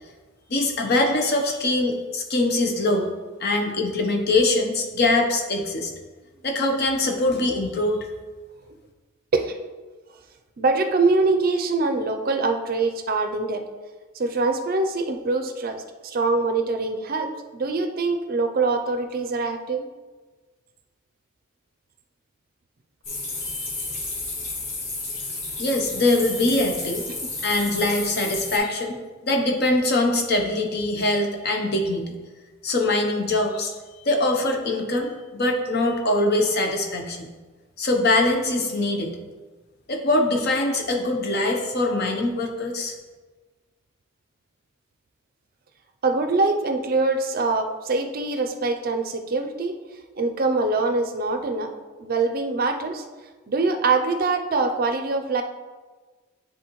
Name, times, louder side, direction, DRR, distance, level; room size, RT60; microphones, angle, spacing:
voice 1, 0.5-3.1 3.4-5.9 6.4-8.1 23.5-23.9 25.6-27.1 27.4-29.0 29.2-32.1 32.6-37.3 37.8-39.1 39.9-42.9, left 2 dB, 50° left, 2 dB, 0.9 m, -23 dB
voice 2, 10.6-13.6 14.1-19.9 27.1-27.2 46.0-49.7 50.2-51.7 52.0-53.0 53.5-55.4, right 3 dB, 45° right, 6 dB, 0.5 m, -24 dB
sound 1, 23.0-28.6, left 2 dB, 75° left, 2.1 m, -32 dB
9.8 x 3.8 x 3.1 m, 1.3 s
head